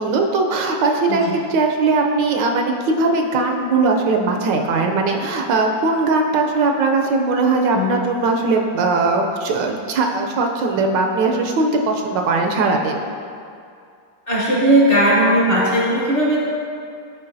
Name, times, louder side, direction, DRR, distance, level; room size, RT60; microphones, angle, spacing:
voice 1, 0.0-13.0, right 3 dB, 75° right, 3 dB, 1.2 m, -19 dB
voice 2, 14.3-16.4, right 1 dB, 40° left, -6 dB, 1.0 m, -17 dB
9.5 x 5.0 x 2.6 m, 2.4 s
omnidirectional pair, 2.0 m